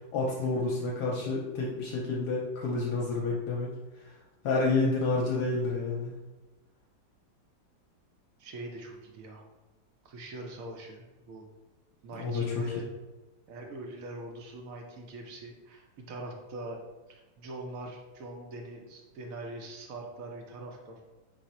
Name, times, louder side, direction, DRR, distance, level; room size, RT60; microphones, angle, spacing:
voice 1, 0.1-3.7 4.0-4.1 4.4-6.1 12.1-12.7, left 3 dB, 70° left, -3 dB, 1.1 m, -29 dB
voice 2, 8.4-9.4 10.0-11.5 12.0-12.9 13.5-16.8 17.1-21.1, right 1 dB, 65° right, 2 dB, 0.8 m, -42 dB
4.8 x 2.0 x 4.1 m, 1.2 s
omnidirectional pair, 1.9 m